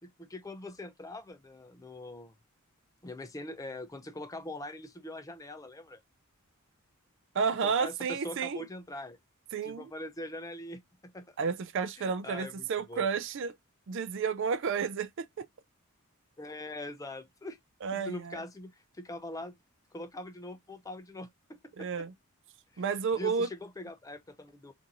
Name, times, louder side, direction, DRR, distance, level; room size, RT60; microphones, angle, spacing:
voice 1, 0.0-2.3 3.0-6.0 7.6-9.2 9.6-11.3 12.0-13.1 16.4-17.6 17.9-19.5 19.9-22.1 22.7-22.8 23.1-24.7, left 1 dB, 15° left, 0.4 m, -43 dB
voice 2, 7.3-8.6 9.5-9.9 11.4-13.5 13.9-15.5 17.8-18.4 21.8-22.1 22.8-23.5, right 5 dB, 55° right, 0.4 m, -31 dB
2.9 x 2.6 x 3.7 m
head